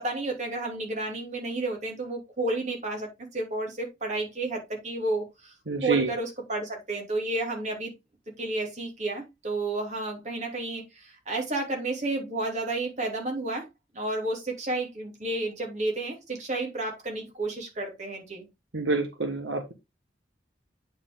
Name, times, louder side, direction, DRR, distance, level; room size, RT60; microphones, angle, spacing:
voice 1, 0.0-5.5 5.8-7.9 8.4-13.7 13.9-18.4, right 2 dB, 40° right, 3.0 m, -31 dB
voice 2, 5.7-6.1 18.7-19.7, right 3 dB, 85° right, 1.4 m, -27 dB
8.9 x 4.9 x 3.7 m
head